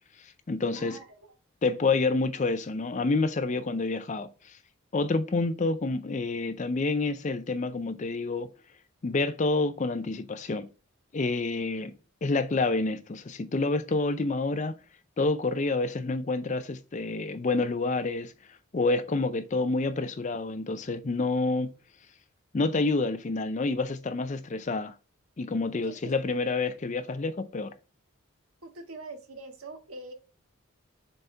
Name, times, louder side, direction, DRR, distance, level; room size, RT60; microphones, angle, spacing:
voice 1, 0.2-1.0 1.6-4.6 4.9-8.5 9.0-10.7 11.1-11.9 12.2-14.8 15.2-18.3 18.7-21.7 22.5-24.9 25.4-27.7, left 3 dB, 35° left, 0.4 m, -28 dB
voice 2, 0.7-1.2 25.8-26.1 28.6-30.1, right 2 dB, 75° right, 1.5 m, -43 dB
7.0 x 4.1 x 3.4 m
head